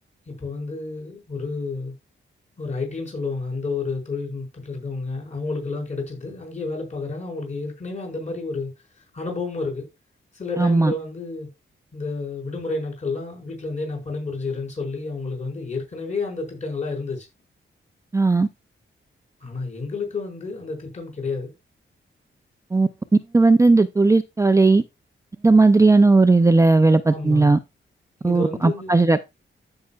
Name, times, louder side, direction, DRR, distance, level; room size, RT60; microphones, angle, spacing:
voice 1, 0.3-1.9 2.6-8.7 9.1-9.9 10.3-11.5 11.9-17.3 19.4-21.5 27.1-27.6 28.2-29.0, left 3 dB, 35° left, 5.1 m, -30 dB
voice 2, 10.6-10.9 18.1-18.5 22.7-22.9 23.3-24.8 25.4-27.6 28.2-29.2, right 3 dB, 15° right, 0.4 m, -16 dB
14.5 x 5.7 x 2.4 m
wide cardioid pair, 115°, 21 cm